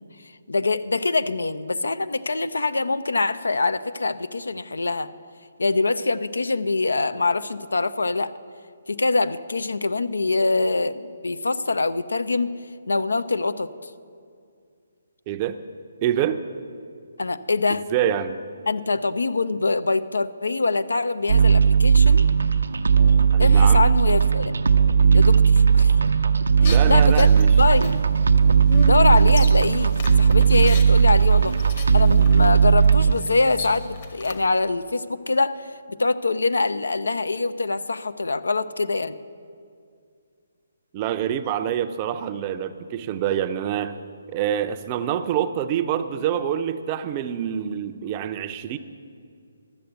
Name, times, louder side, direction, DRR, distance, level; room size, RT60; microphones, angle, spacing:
voice 1, 0.5-5.1 5.6-8.3 8.9-12.5 12.9-13.7 17.2-17.9 18.7-22.2 23.4-24.5 25.1-26.0 26.6-27.3 27.6-28.0 28.8-31.6 31.9-39.1, left 3 dB, 90° left, 14 dB, 0.5 m, -24 dB
voice 2, 15.3-15.6 16.0-16.4 17.9-18.4 23.3-23.9 26.6-27.5 40.9-44.0 44.3-48.8, right 10 dB, 30° right, 10 dB, 0.5 m, -26 dB
sound 1, 21.3-33.1, right 6 dB, 80° right, 0.6 m, -17 dB
sound 2, 26.6-34.4, left 4 dB, 45° left, 1.1 m, -36 dB
12.5 x 6.8 x 8.0 m, 2.3 s
hypercardioid pair, 155°, 0 cm